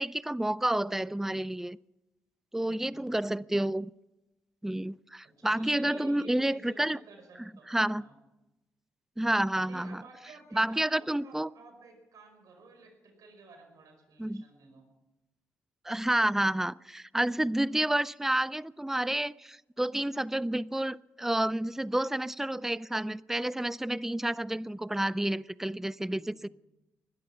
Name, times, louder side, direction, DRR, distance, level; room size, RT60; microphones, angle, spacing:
voice 1, 0.0-1.8 2.5-3.9 4.6-7.0 7.7-8.0 9.2-10.0 10.5-11.5 14.2-14.4 15.8-26.5, right 1 dB, 5° right, 0.4 m, -30 dB
voice 2, 2.5-3.2 5.2-8.2 9.6-14.9 26.0-26.4, right 3 dB, 70° right, 5.0 m, -53 dB
20.0 x 12.5 x 5.9 m
supercardioid pair, 55°, 6 cm